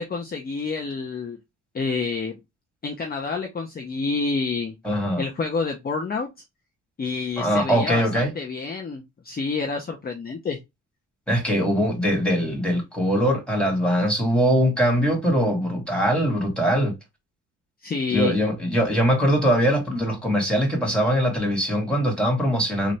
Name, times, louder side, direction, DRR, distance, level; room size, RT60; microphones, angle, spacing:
voice 1, 0.0-1.4 1.7-2.4 2.8-4.7 5.2-6.3 7.0-10.6 17.8-18.3, left 4 dB, 30° left, 0.8 m, -28 dB
voice 2, 4.8-5.2 7.4-8.3 11.3-16.9 18.1-22.9, equal, 5° left, 2.4 m, -22 dB
4.0 x 2.6 x 3.3 m
cardioid pair, 90°, 30 cm